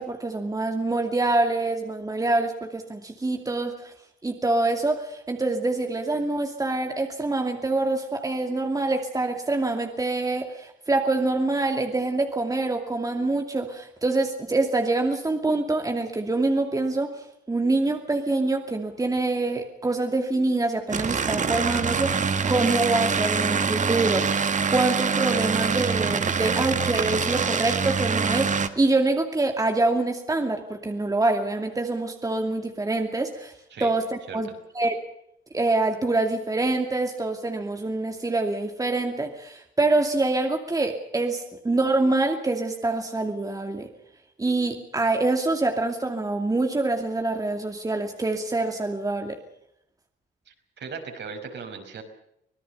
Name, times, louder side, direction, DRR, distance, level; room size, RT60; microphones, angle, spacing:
voice 1, 0.0-3.9 4.2-24.3 24.7-33.5 33.8-34.5 34.7-35.0 35.5-43.9 44.4-49.4, right 2 dB, 15° right, 4 dB, 2.5 m, -25 dB
sound 1, 20.9-28.7, right 5 dB, 40° right, 1.7 m, -25 dB
voice 2, 50.5-52.0, right 5 dB, 60° right, 4 dB, 5.4 m, -38 dB
25.5 x 18.5 x 6.9 m, 0.76 s
cardioid pair, 90°, 20 cm